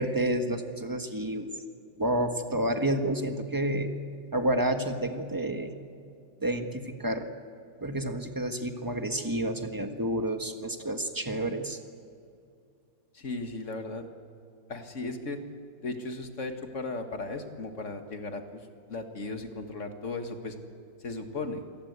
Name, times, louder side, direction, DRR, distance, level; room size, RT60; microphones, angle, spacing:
voice 1, 0.0-1.5 2.0-3.9 4.3-5.7 6.4-7.3 7.8-11.8, right 1 dB, 10° right, 6 dB, 1.3 m, -29 dB
voice 2, 13.1-14.0 14.7-15.4 15.8-20.6 21.0-21.6, left 2 dB, 40° left, 6 dB, 2.0 m, -36 dB
27.5 x 18.5 x 8.2 m, 2.4 s
omnidirectional pair, 1.9 m